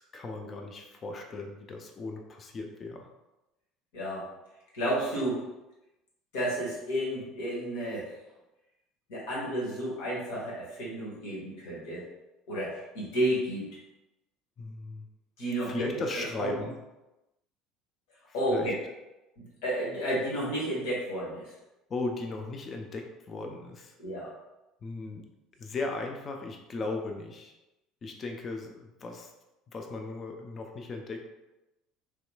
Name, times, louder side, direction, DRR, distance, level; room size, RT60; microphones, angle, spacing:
voice 1, 0.0-3.1 14.6-15.1 15.6-16.8 18.5-18.7 21.9-23.9 24.8-25.2 25.6-27.5 28.0-29.3 29.7-31.3, left 3 dB, 35° left, 3 dB, 0.4 m, -37 dB
voice 2, 3.9-4.3 4.7-5.4 6.3-8.1 9.1-12.0 12.5-13.6 15.4-16.0 16.4-16.6 18.3-18.7 19.4-21.5 24.0-24.3, right 1 dB, 60° left, -6 dB, 1.2 m, -31 dB
3.2 x 2.9 x 2.2 m, 0.99 s
figure-of-eight pair, 65°, 0 cm